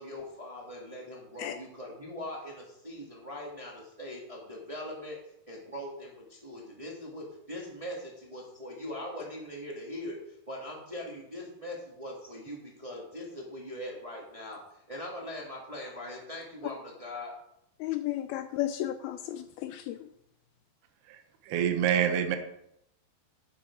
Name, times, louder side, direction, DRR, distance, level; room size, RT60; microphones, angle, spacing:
voice 1, 0.0-5.2 5.5-14.6 14.9-17.3, left 1 dB, 20° right, -2 dB, 0.9 m, -41 dB
voice 2, 17.8-20.0, left 13 dB, 85° left, 10 dB, 2.2 m, -33 dB
voice 3, 21.4-22.4, right 9 dB, 70° right, 5 dB, 2.0 m, -26 dB
11.5 x 8.6 x 4.8 m, 0.77 s
omnidirectional pair, 4.9 m